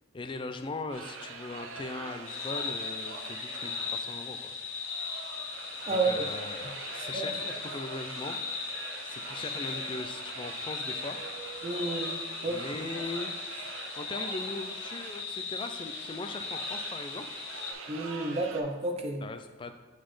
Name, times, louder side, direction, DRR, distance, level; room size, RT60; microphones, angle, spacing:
voice 1, 0.1-4.5 5.9-8.7 9.0-11.2 12.4-13.6 14.0-17.4 19.2-19.7, left 3 dB, 25° left, 8 dB, 0.3 m, -40 dB
sound 1, 0.9-18.6, right 4 dB, 75° right, 0.6 m, -43 dB
sound 2, 2.3-17.7, left 5 dB, 65° left, 0.6 m, -38 dB
voice 2, 11.6-12.1 12.4-12.6 17.9-19.3, right 3 dB, 30° right, 3 dB, 0.6 m, -30 dB
8.0 x 4.1 x 3.1 m, 1.3 s
head